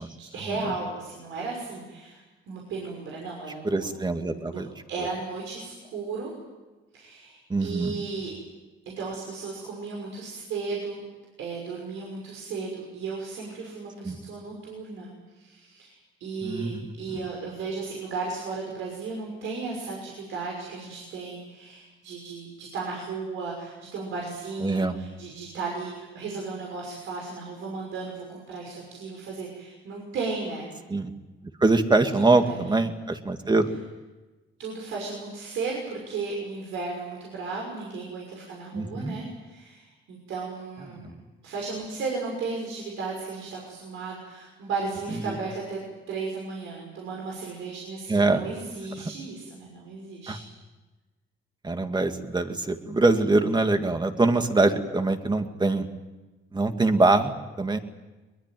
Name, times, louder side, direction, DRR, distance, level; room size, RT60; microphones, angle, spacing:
voice 1, 0.2-2.2 2.5-3.9 4.2-4.6 4.9-6.3 6.9-8.3 9.0-11.1 11.4-15.1 15.3-30.7 32.1-32.7 34.6-41.1 41.4-45.8 46.1-50.4, right 4 dB, 80° right, -1 dB, 6.1 m, -35 dB
voice 2, 3.6-4.7 7.5-7.9 14.0-14.2 16.4-16.9 24.6-25.0 30.9-31.1 31.6-33.7 38.7-39.2 41.0-41.1 45.3-45.4 48.1-48.4 50.3-50.4 51.6-55.9 56.5-57.8, right 2 dB, 20° right, 6 dB, 2.2 m, -23 dB
22.0 x 22.0 x 9.3 m, 1.2 s
cardioid pair, 90°, 20 cm